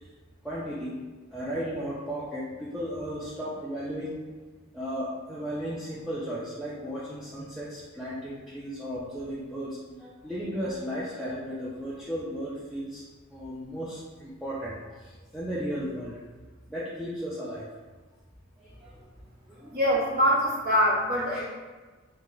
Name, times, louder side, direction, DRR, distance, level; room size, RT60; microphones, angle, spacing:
voice 1, 0.4-1.0 1.3-4.2 4.7-13.0 13.3-16.2 16.7-17.6 18.6-19.0 19.5-19.8 21.3-21.4, equal, ahead, -9 dB, 0.4 m, -35 dB
voice 2, 19.7-21.4, equal, 45° right, -5 dB, 0.8 m, -24 dB
2.4 x 2.1 x 3.7 m, 1.3 s
head